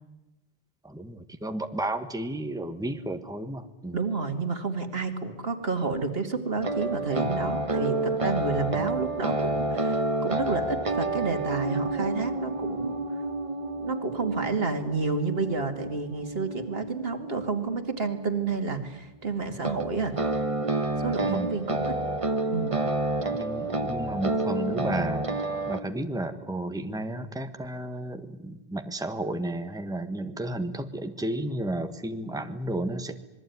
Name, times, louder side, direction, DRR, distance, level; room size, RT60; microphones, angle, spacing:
voice 1, 0.8-4.0 8.7-8.9 21.2-21.5 23.3-25.3 25.7-33.2, right 1 dB, 5° right, 8 dB, 1.4 m, -32 dB
voice 2, 3.9-13.0 13.8-20.1 21.0-22.0 22.5-22.8, right 4 dB, 70° right, 7 dB, 2.5 m, -30 dB
sound 1, 6.6-18.5 19.6-25.8, right 2 dB, 35° right, 1.2 m, -29 dB
26.0 x 22.0 x 9.4 m, 0.99 s
omnidirectional pair, 1.0 m